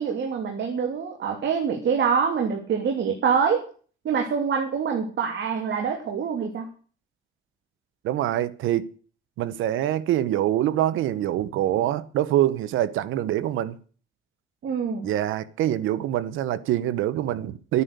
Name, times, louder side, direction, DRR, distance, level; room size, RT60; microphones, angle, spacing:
voice 1, 0.0-3.6 4.0-6.7 14.6-15.1, right 6 dB, 65° right, 3.0 m, -25 dB
voice 2, 8.0-8.9 9.4-13.8 15.0-17.8, right 12 dB, 90° right, 1.0 m, -25 dB
13.0 x 9.8 x 6.8 m
cardioid pair, 90°, 20 cm